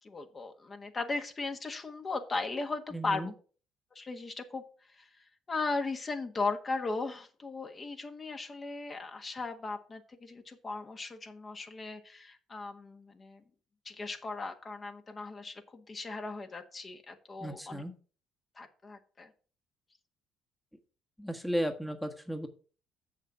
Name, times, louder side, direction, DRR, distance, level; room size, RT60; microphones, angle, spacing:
voice 1, 0.0-3.3 3.9-4.6 4.9-13.4 13.8-17.8 18.5-19.3, left 3 dB, 35° left, 5 dB, 1.5 m, -37 dB
voice 2, 2.9-3.3 17.4-17.9 21.2-22.5, equal, ahead, 5 dB, 1.3 m, -34 dB
7.3 x 6.6 x 5.7 m, 0.40 s
hypercardioid pair, 55°, 0 cm